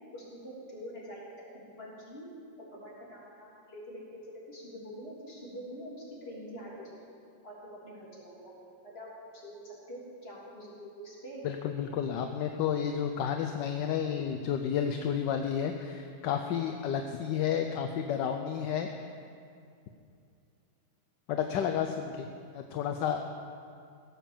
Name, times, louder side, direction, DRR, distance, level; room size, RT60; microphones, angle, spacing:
voice 1, 0.1-1.2 1.8-2.3 2.7-6.9 7.4-8.5 8.8-9.1 9.4-11.4, equal, 30° left, -6 dB, 3.6 m, -45 dB
voice 2, 11.4-19.1 21.3-22.3 22.5-23.3, left 8 dB, 75° left, 5 dB, 1.3 m, -31 dB
16.5 x 7.7 x 7.1 m, 2.5 s
omnidirectional pair, 2.0 m